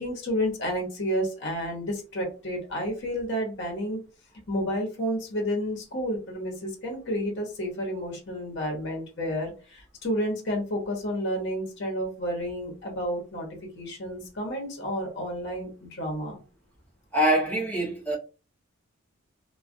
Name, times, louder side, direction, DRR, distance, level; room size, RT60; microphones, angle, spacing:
voice 1, 0.0-4.0 4.5-13.5 13.7-16.4, equal, 55° left, 0.8 m, -30 dB
voice 2, 17.1-18.1, right 1 dB, 10° left, 0.7 m, -24 dB
2.3 x 2.2 x 2.5 m
head